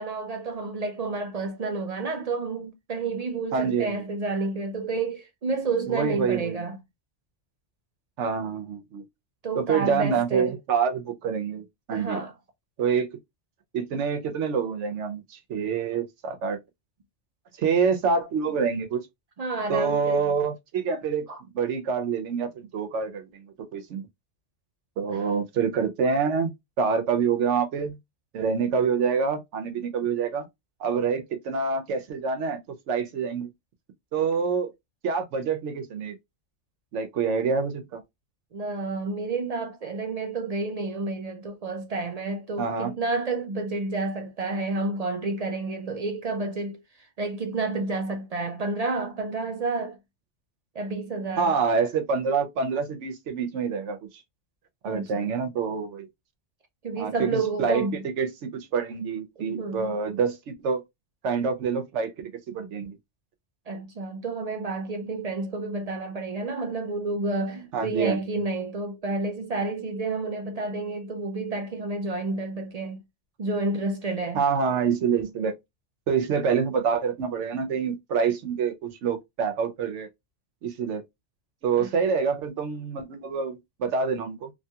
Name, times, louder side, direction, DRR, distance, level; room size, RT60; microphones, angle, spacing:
voice 1, 0.0-6.8 9.4-10.5 11.9-12.3 19.4-20.3 21.3-21.4 25.1-25.3 38.5-46.8 47.2-50.0 50.8-51.5 54.8-55.3 56.8-58.0 59.4-59.9 63.7-73.0 73.4-74.4 81.8-81.9, right 3 dB, 60° right, 0.4 m, -30 dB
voice 2, 3.5-4.0 5.9-6.6 8.2-9.0 9.5-12.2 12.8-13.1 13.7-16.6 17.6-19.0 19.7-24.0 25.0-26.5 26.8-28.0 28.3-30.5 30.8-32.6 32.9-33.5 34.1-34.7 35.0-36.2 36.9-38.0 42.6-42.9 51.4-54.2 54.8-56.1 57.0-57.9 58.2-60.8 61.2-63.0 67.7-68.4 74.3-75.6 76.1-80.1 80.6-81.0 81.6-84.5, right 5 dB, 85° right, 1.0 m, -26 dB
2.9 x 2.7 x 2.2 m
omnidirectional pair, 1.2 m